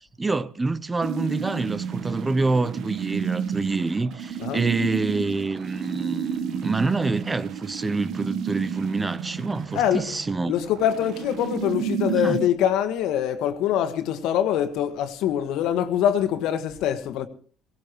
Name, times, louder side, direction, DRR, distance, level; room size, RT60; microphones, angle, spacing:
voice 1, 0.2-10.5 12.2-12.4, right 3 dB, 20° right, 0.6 m, -27 dB
sound 1, 1.0-12.5, right 7 dB, 60° right, 1.3 m, -31 dB
voice 2, 9.7-10.1 10.5-17.3, left 10 dB, 65° left, 1.6 m, -24 dB
18.0 x 16.5 x 3.1 m
supercardioid pair, 80°, 0 cm